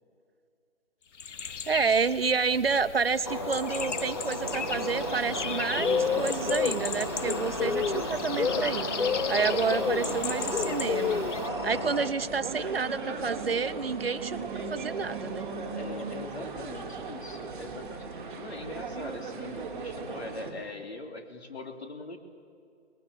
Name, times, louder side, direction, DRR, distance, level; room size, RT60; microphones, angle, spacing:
sound 1, 1.2-11.5, left 7 dB, 80° left, 0.7 m, -32 dB
voice 1, 1.7-8.9 9.3-11.2 11.6-15.5, right 5 dB, 55° right, 9 dB, 1.0 m, -29 dB
sound 2, 3.2-12.1, left 1 dB, 20° left, 0.8 m, -35 dB
sound 3, 4.4-20.5, right 4 dB, 10° right, 1.6 m, -38 dB
voice 2, 12.2-13.3 15.7-22.2, left 2 dB, 60° left, 5 dB, 3.2 m, -42 dB
23.0 x 20.5 x 8.9 m, 2.5 s
hypercardioid pair, 170°, 35 cm